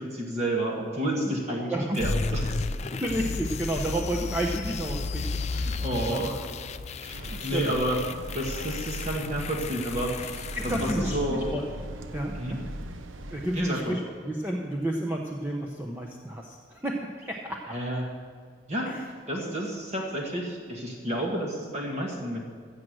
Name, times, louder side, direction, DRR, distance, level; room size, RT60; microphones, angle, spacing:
voice 1, 0.0-2.6 5.5-6.4 7.0-8.0 8.3-11.5 12.3-12.6 13.5-13.8 17.7-18.1 18.7-19.0 19.3-22.4, right 1 dB, 35° right, -1 dB, 1.5 m, -30 dB
voice 2, 1.6-2.0 2.9-6.2 7.3-7.7 10.5-11.6 12.1-12.6 13.3-17.6 18.8-19.0 19.4-19.6, right 1 dB, 10° right, -1 dB, 0.8 m, -31 dB
sound 1, 1.9-11.9, left 4 dB, 35° left, 0.4 m, -33 dB
sound 2, 7.1-13.6, right 1 dB, 75° right, 0.8 m, -38 dB
15.0 x 7.7 x 6.4 m, 2.1 s
head